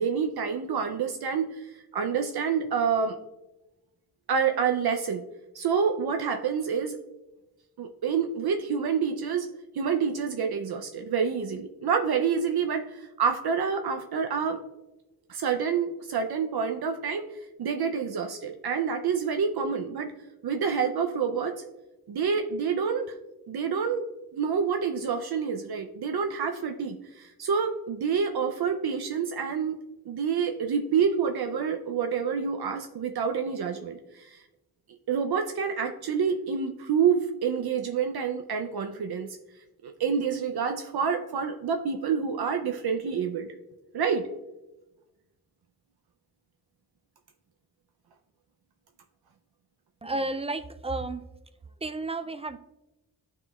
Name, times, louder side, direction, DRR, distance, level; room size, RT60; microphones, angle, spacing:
voice 1, 0.0-3.2 4.3-5.2 5.5-7.0 7.8-9.5 9.7-14.6 15.3-17.3 17.6-20.1 20.4-21.5 22.1-23.1 23.5-24.0 24.3-29.8 30.1-34.4 35.1-39.4 39.8-43.5 43.9-44.2, right 6 dB, 75° right, 0.5 m, -28 dB
voice 2, 50.0-51.2 51.8-52.6, right 2 dB, 15° right, 0.3 m, -32 dB
11.0 x 3.8 x 2.3 m
wide cardioid pair, 65°, 38 cm